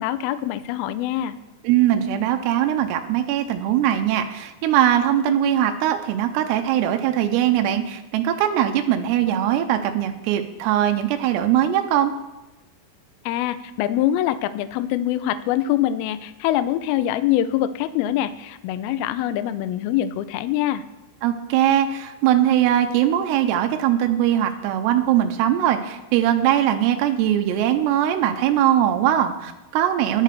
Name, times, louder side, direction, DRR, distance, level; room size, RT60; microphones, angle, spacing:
voice 1, 0.0-1.4 13.3-20.8, left 12 dB, 85° left, 12 dB, 2.1 m, -24 dB
voice 2, 1.6-12.1 21.2-30.2, right 11 dB, 85° right, 6 dB, 2.8 m, -21 dB
15.0 x 11.0 x 3.3 m, 1.0 s
omnidirectional pair, 4.9 m